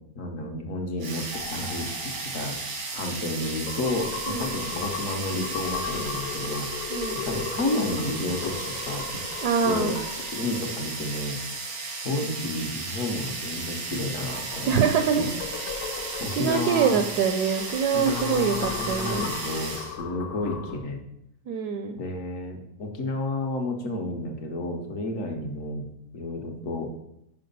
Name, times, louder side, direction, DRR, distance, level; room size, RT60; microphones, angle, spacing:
voice 1, 0.2-1.8 2.3-2.6 2.9-6.8 7.2-9.0 9.6-9.9 10.3-11.4 12.0-14.7 15.1-15.3 16.2-17.0 17.9-21.0 22.0-25.9 26.1-26.9, left 2 dB, 55° left, 2 dB, 1.1 m, -31 dB
sound 1, 1.0-20.0, right 3 dB, 90° right, 2.0 m, -35 dB
sound 2, 1.3-11.9 13.9-20.8, left 6 dB, 80° left, 1.4 m, -37 dB
voice 2, 4.3-4.6 6.9-7.2 9.4-10.0 14.7-15.2 16.3-19.3 21.5-22.0, right 6 dB, 75° right, 6 dB, 1.0 m, -24 dB
5.9 x 4.7 x 5.3 m, 0.80 s
omnidirectional pair, 1.8 m